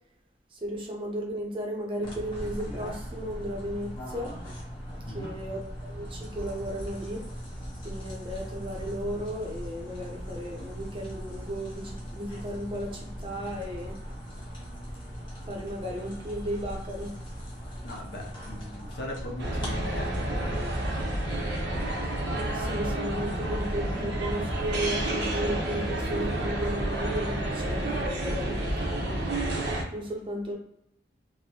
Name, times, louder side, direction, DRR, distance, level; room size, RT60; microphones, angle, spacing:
voice 1, 0.5-4.4 5.1-7.3 7.8-13.9 15.5-17.1 22.5-29.2 29.9-30.5, equal, 30° right, 0 dB, 0.6 m, -35 dB
sound 1, 2.0-19.7, equal, 25° left, 0.9 m, -39 dB
voice 2, 17.8-20.1, left 1 dB, 70° left, 0 dB, 0.7 m, -39 dB
sound 2, 19.4-29.8, right 1 dB, 75° right, 0.7 m, -30 dB
3.4 x 2.1 x 2.8 m, 0.76 s
head